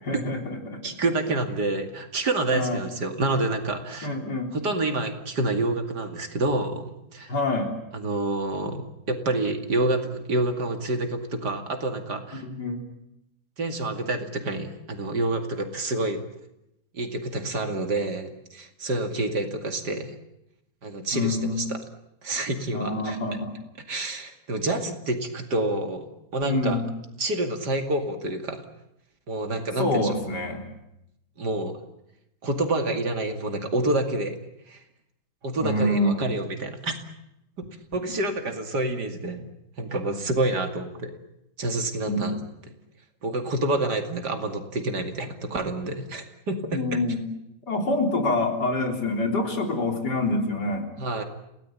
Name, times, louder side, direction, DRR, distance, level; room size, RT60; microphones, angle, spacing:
voice 1, 0.1-0.8 2.5-2.8 4.0-4.5 7.3-7.7 12.4-12.8 21.1-21.6 22.7-23.5 26.4-26.8 29.8-30.7 35.6-36.3 42.1-42.2 46.7-47.2 47.7-50.9, left 2 dB, 70° left, 4 dB, 4.1 m, -26 dB
voice 2, 0.8-4.2 4.5-7.3 7.9-8.8 9.1-12.4 13.6-16.2 16.9-20.1 20.8-21.8 22.2-23.2 23.9-26.8 27.2-28.6 29.3-30.1 31.4-31.8 32.4-34.4 34.7-34.8 35.4-37.0 37.6-37.7 37.9-39.4 39.8-41.1 41.6-42.4 43.2-47.0 51.0-51.2, right 2 dB, 65° right, 6 dB, 3.0 m, -28 dB
29.0 x 18.0 x 8.8 m, 0.84 s
omnidirectional pair, 1.9 m